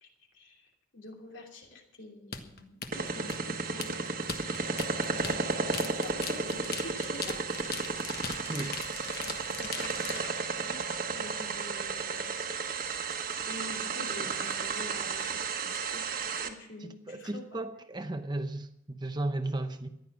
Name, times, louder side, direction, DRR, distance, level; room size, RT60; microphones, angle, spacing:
voice 1, 0.3-4.8 5.1-7.4 9.6-10.2 10.6-12.5 13.5-16.0 16.3-17.4, left 2 dB, 65° left, 2.9 m, -47 dB
sound 1, 2.3-10.3, left 6 dB, 50° left, 1.3 m, -40 dB
sound 2, 2.9-16.5, right 4 dB, 45° right, 1.3 m, -33 dB
voice 2, 16.8-19.9, right 2 dB, 20° right, 0.8 m, -35 dB
14.5 x 11.0 x 6.1 m
head